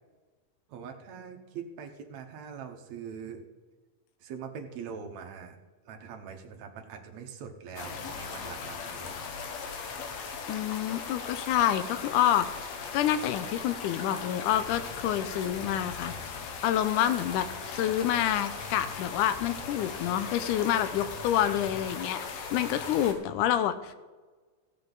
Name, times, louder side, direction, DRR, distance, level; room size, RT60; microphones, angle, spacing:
voice 1, 0.7-3.4 4.2-5.6 5.9-9.1, right 6 dB, 65° right, 4 dB, 2.1 m, -42 dB
sound 1, 7.8-23.1, left 5 dB, 65° left, 2.0 m, -38 dB
voice 2, 10.5-23.9, left 11 dB, 80° left, 11 dB, 2.0 m, -28 dB
15.0 x 8.1 x 3.9 m, 1.3 s
omnidirectional pair, 3.9 m